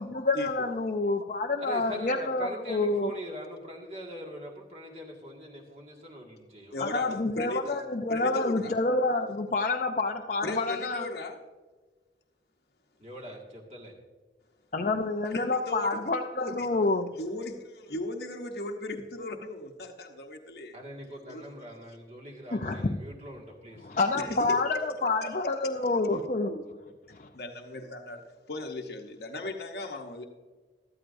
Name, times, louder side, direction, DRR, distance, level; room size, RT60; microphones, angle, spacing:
voice 1, 0.0-3.1 6.8-11.1 14.7-17.1 22.5-23.0 23.8-26.8 27.1-27.3, left 3 dB, 45° left, 2 dB, 0.5 m, -28 dB
voice 2, 1.6-7.1 8.5-8.8 13.0-13.9 20.7-23.9, equal, 35° right, 0 dB, 1.9 m, -42 dB
voice 3, 6.7-7.8 8.1-8.7 10.4-11.4 15.3-16.0 16.4-16.7 17.1-20.8 21.3-21.4 24.1-24.6 25.2-25.5 25.8-25.9 27.3-28.2 28.5-30.2, left 2 dB, 70° left, 1 dB, 0.9 m, -37 dB
14.0 x 13.0 x 2.6 m, 1.3 s
head